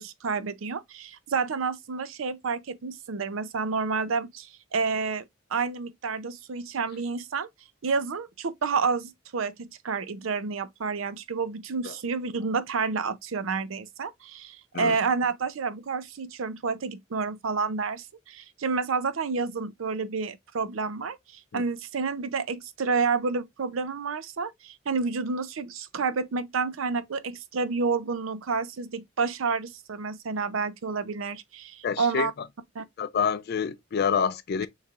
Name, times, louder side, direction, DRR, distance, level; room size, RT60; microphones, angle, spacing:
voice 1, 0.0-5.2 5.5-7.5 7.8-32.3 32.8-32.9, right 5 dB, 85° right, 0.5 m, -29 dB
voice 2, 31.8-32.5 33.0-34.7, left 6 dB, 50° left, 0.4 m, -27 dB
6.4 x 3.1 x 2.4 m
head